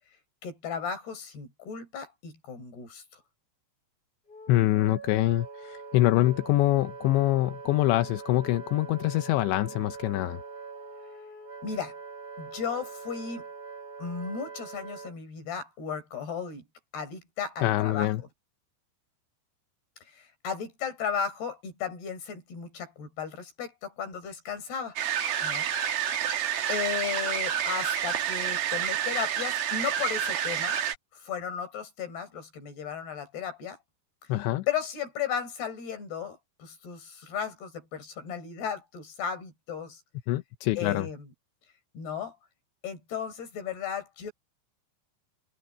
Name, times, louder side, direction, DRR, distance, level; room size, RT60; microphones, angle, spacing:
voice 1, 0.4-3.0 11.6-12.0 12.4-13.4 14.0-16.7 16.9-18.3 20.1-25.0 25.4-25.7 26.7-30.8 31.1-33.8 34.7-40.0 40.8-41.3 41.9-42.4 42.8-44.3, left 7 dB, 65° left, 6.8 m, -35 dB
Wind instrument woodwind instrument, 4.3-15.1, right 5 dB, 15° left, 2.5 m, -43 dB
voice 2, 4.5-10.4 17.6-18.2 34.3-34.7 40.3-41.1, left 16 dB, 85° left, 3.0 m, -25 dB
sound 1, 25.0-31.0, right 9 dB, 60° right, 3.7 m, -29 dB
omnidirectional pair, 5.2 m